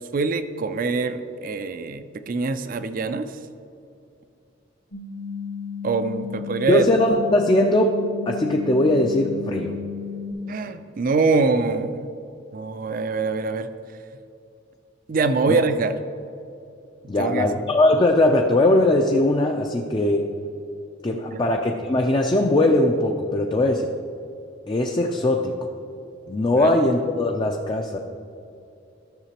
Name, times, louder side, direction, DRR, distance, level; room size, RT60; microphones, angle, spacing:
voice 1, 0.1-3.3 5.8-6.8 10.5-12.1 12.5-13.7 15.1-16.0 17.2-17.5 21.3-21.4 26.6-26.7, right 4 dB, 45° right, 11 dB, 0.4 m, -24 dB
sound 1, 4.9-10.3, left 7 dB, 85° left, 1.8 m, -33 dB
voice 2, 6.7-8.0 8.3-9.7 15.5-15.6 17.1-20.3 21.0-23.9 24.7-25.6 26.3-28.0, left 1 dB, 25° left, 2 dB, 0.4 m, -20 dB
12.5 x 6.6 x 2.9 m, 2.7 s
head